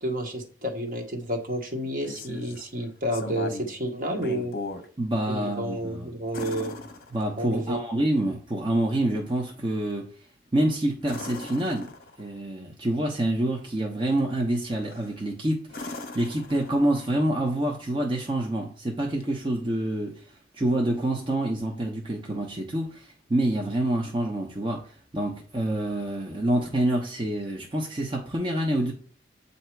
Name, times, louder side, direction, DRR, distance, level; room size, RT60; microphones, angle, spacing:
voice 1, 0.0-4.5 5.3-6.8 7.4-7.8, right 1 dB, 50° right, 1.1 m, -30 dB
sound 1, 1.8-2.6 3.1-3.7 4.1-4.9 6.3-7.6 11.0-12.3 14.8-15.2 15.7-17.1 19.2-19.3, left 2 dB, 55° left, 0.8 m, -38 dB
voice 2, 5.0-6.1 7.1-10.1 10.5-11.9 12.2-20.2 20.5-28.9, right 1 dB, 25° right, 0.7 m, -27 dB
7.8 x 2.7 x 4.5 m
head